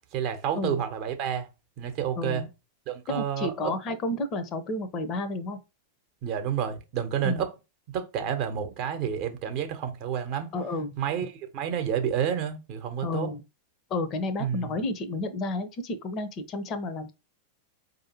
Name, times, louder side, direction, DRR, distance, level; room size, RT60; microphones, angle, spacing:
voice 1, 0.0-1.5 1.8-2.4 2.9-3.7 6.2-7.5 7.9-10.5 11.0-13.3 14.4-14.8, right 8 dB, 45° right, 0.8 m, -30 dB
voice 2, 2.2-2.5 3.1-5.6 7.2-7.4 10.5-10.9 13.0-13.4 13.9-17.1, left 2 dB, 35° left, 0.6 m, -31 dB
4.9 x 2.7 x 2.8 m
figure-of-eight pair, 90°, 0 cm